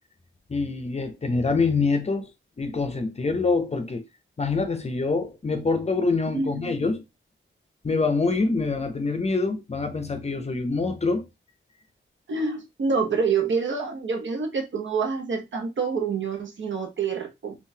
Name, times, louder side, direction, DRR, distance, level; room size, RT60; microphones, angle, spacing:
voice 1, 0.5-2.3 2.6-4.0 4.4-7.0 7.8-11.2, left 4 dB, 30° left, 0.5 m, -25 dB
voice 2, 6.3-6.9 12.3-17.6, right 5 dB, 65° right, 0.8 m, -27 dB
3.7 x 2.4 x 2.7 m
wide cardioid pair, 120°, 21 cm